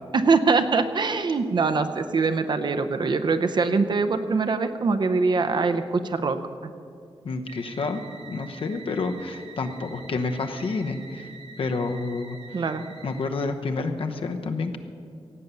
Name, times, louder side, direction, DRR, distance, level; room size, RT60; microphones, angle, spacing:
voice 1, 0.1-6.4 12.5-12.8, right 4 dB, 50° right, 9 dB, 0.6 m, -23 dB
voice 2, 7.2-11.3 11.6-12.4 13.0-14.8, left 3 dB, 65° left, 6 dB, 1.0 m, -29 dB
sound 1, 7.5-13.5, right 4 dB, 85° right, 1.8 m, -46 dB
16.5 x 8.4 x 6.9 m, 2.4 s
wide cardioid pair, 165°, 10 cm